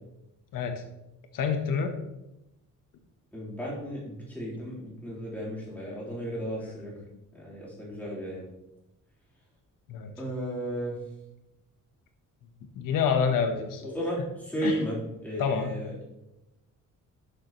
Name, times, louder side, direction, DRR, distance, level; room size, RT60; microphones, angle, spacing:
voice 1, 0.5-0.8 1.3-1.9 9.9-10.1 12.8-13.9 14.6-14.7 15.4-15.7, left 6 dB, 85° left, 6 dB, 1.1 m, -27 dB
voice 2, 3.3-6.9 7.3-8.5 10.2-11.0 13.8-15.9, equal, 5° left, -7 dB, 3.5 m, -34 dB
13.0 x 6.8 x 3.0 m, 0.91 s
cardioid pair, 180°, 32 cm